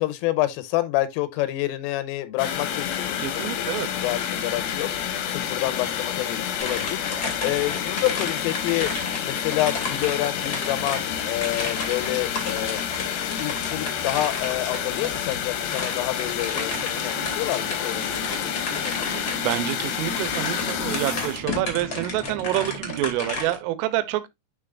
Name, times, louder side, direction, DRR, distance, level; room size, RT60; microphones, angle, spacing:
voice 1, 0.0-4.9 5.3-8.9 9.2-12.8 13.4-19.1, left 15 dB, 85° left, 3.4 m, -28 dB
sound 1, 2.4-21.7, left 9 dB, 70° left, 2.4 m, -29 dB
voice 2, 3.2-3.9 19.4-24.3, right 15 dB, 90° right, 3.4 m, -27 dB
sound 2, 6.6-23.5, left 2 dB, 45° left, 1.2 m, -33 dB
sound 3, 16.3-23.1, right 7 dB, 65° right, 3.4 m, -40 dB
11.5 x 4.1 x 2.4 m
omnidirectional pair, 5.7 m